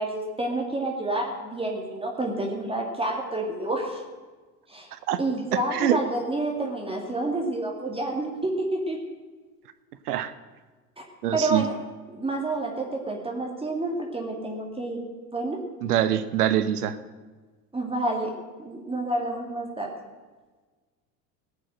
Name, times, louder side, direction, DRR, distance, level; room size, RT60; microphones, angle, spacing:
voice 1, 0.0-4.0 4.7-4.9 5.2-9.0 11.0-11.1 11.3-11.8 12.1-15.0 15.3-15.6 17.7-19.9, right 2 dB, 10° right, 0 dB, 2.3 m, -29 dB
voice 2, 11.2-11.6 15.8-17.0, right 11 dB, 65° right, 12 dB, 1.1 m, -24 dB
18.0 x 6.3 x 7.8 m, 1.3 s
figure-of-eight pair, 75°, 49 cm